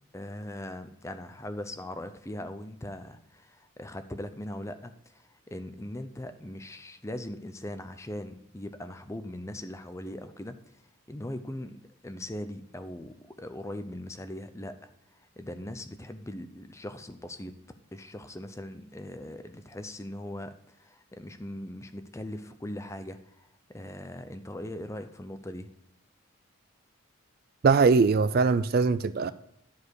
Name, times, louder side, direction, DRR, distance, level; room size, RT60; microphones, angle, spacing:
voice 1, 0.1-10.7 11.1-17.6 17.9-25.7, left 1 dB, 15° left, 0.5 m, -40 dB
voice 2, 27.6-29.3, right 4 dB, 45° right, 0.3 m, -21 dB
10.5 x 4.8 x 4.6 m
head